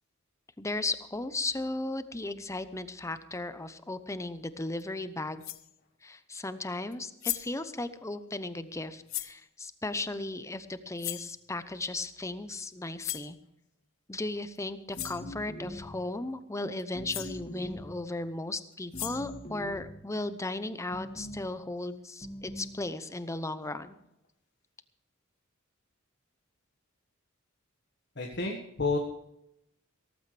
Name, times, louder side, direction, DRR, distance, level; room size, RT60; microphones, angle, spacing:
voice 1, 0.6-5.4 6.0-13.4 14.1-23.9, left 2 dB, 15° left, 12 dB, 0.8 m, -36 dB
sound 1, 4.8-4.9 5.4-5.7 6.9-7.0 7.2-7.6 9.1-9.4 11.0-11.3 13.0-13.3 14.6-14.7 14.9-15.3 16.8-16.9 17.1-17.4 18.7-19.4, left 15 dB, 70° left, 0.8 m, -37 dB
sound 2, 15.0-16.1 16.9-18.1 18.9-20.0 20.9-21.5 22.2-22.8, equal, 35° left, 2.0 m, -42 dB
voice 2, 28.2-29.0, left 3 dB, 55° left, 1 dB, 1.7 m, -30 dB
17.0 x 14.5 x 3.4 m, 0.82 s
head